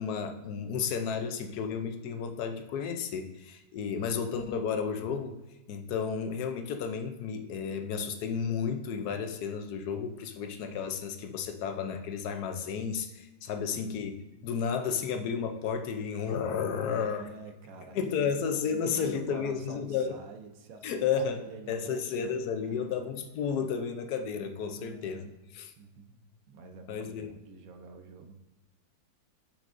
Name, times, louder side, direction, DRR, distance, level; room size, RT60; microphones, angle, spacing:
voice 1, 0.0-5.4 5.7-14.1 14.4-17.3 17.9-20.1 20.8-25.2 25.5-25.7 26.9-27.3, left 6 dB, 80° left, 6 dB, 1.2 m, -32 dB
voice 2, 16.8-18.4 18.9-22.9 24.3-25.3 25.8-26.2 26.5-28.4, right 4 dB, 65° right, 5 dB, 1.1 m, -48 dB
6.7 x 6.1 x 2.6 m, 1.0 s
omnidirectional pair, 1.7 m